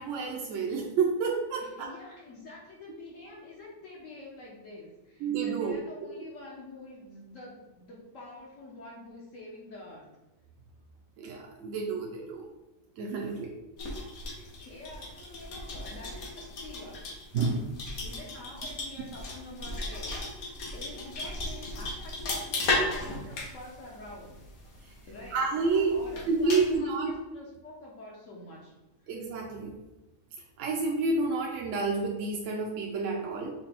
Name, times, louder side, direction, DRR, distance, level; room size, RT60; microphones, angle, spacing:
voice 1, 0.0-1.9 5.2-5.8 6.0-6.1 11.2-12.5 13.0-13.5 17.3-17.6 24.8-24.9 25.3-26.0 26.3-27.1 29.1-29.8 30.6-33.5, right 4 dB, 65° right, 0 dB, 0.9 m, -29 dB
voice 2, 1.6-10.1 14.3-17.0 18.0-24.4 25.1-28.7 29.0-29.1, left 2 dB, 65° left, -5 dB, 1.3 m, -47 dB
sound 1, 13.8-26.8, left 2 dB, 85° left, 1.5 m, -36 dB
5.3 x 2.2 x 4.2 m, 1.0 s
omnidirectional pair, 1.5 m